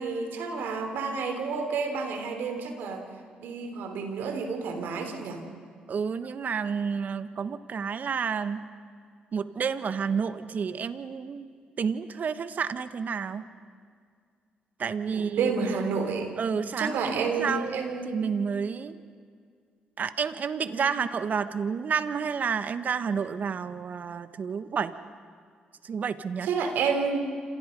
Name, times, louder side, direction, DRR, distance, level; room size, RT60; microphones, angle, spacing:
voice 1, 0.0-3.1 3.4-5.4 15.1-16.3 16.8-18.3 20.6-21.0 26.4-27.3, right 5 dB, 75° right, 5 dB, 3.5 m, -30 dB
voice 2, 5.9-8.6 9.3-11.5 11.8-13.4 14.8-15.7 16.4-19.0 20.0-24.9 25.8-26.5, right 6 dB, 55° right, 12 dB, 1.4 m, -30 dB
28.5 x 26.5 x 5.4 m, 2.1 s
supercardioid pair, 60°, 3 cm